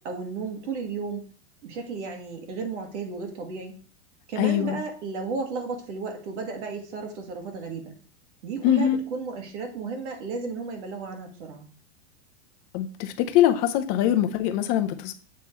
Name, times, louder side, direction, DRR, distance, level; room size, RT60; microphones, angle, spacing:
voice 1, 0.0-1.3 1.6-3.7 4.3-7.9 8.4-11.7, right 4 dB, 80° right, 4 dB, 1.8 m, -33 dB
voice 2, 4.4-4.8 8.6-9.0 12.7-15.1, left 11 dB, 35° left, 8 dB, 0.6 m, -23 dB
7.4 x 3.7 x 4.4 m, 0.42 s
supercardioid pair, 160°, 35 cm